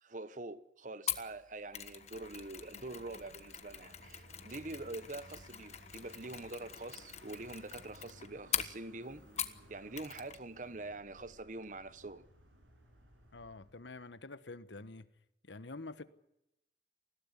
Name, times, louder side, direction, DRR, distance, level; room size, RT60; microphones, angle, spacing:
voice 1, 0.0-9.3 9.7-12.2, right 2 dB, 45° right, 1.0 m, -45 dB
Mechanisms, 1.1-9.7 10.0-10.4 10.7-10.8, left 10 dB, 35° left, 1.3 m, -42 dB
Vehicle, 1.8-14.0, equal, 90° right, 7.9 m, -60 dB
voice 2, 13.3-15.1 15.4-16.0, left 3 dB, 75° left, 1.3 m, -47 dB
21.0 x 16.5 x 9.7 m
head